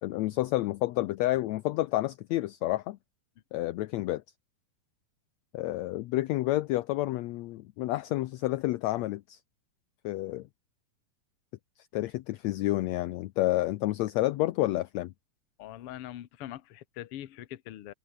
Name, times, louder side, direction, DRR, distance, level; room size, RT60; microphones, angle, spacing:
voice 1, 0.0-3.0 3.5-4.2 5.5-9.4 10.0-10.5 11.9-15.1, left 16 dB, 75° left, 1.8 m, -29 dB
voice 2, 15.6-17.9, left 13 dB, 60° left, 1.8 m, -42 dB
omnidirectional pair, 3.5 m